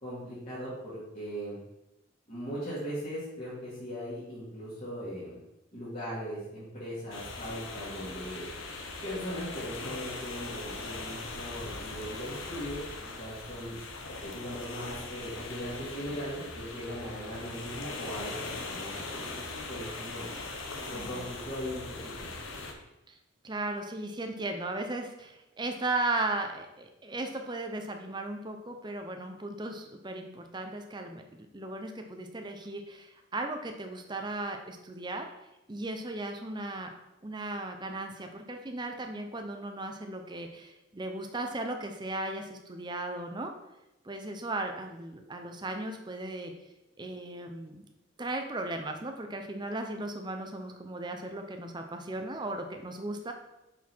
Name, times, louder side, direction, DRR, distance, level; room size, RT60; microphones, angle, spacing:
voice 1, 0.0-1.6 2.3-5.4 5.7-8.4 9.0-13.8 14.2-20.3 20.9-22.3, equal, 35° left, -11 dB, 2.6 m, -39 dB
sound 1, 7.1-22.7, left 3 dB, 85° left, 1.1 m, -40 dB
voice 2, 20.9-21.3 23.1-23.2 23.4-31.2 31.5-35.3 35.7-36.9 37.2-43.5 44.0-46.5 47.0-47.8 48.2-53.3, right 2 dB, 20° right, 4 dB, 0.8 m, -36 dB
6.5 x 6.0 x 4.6 m, 0.93 s
head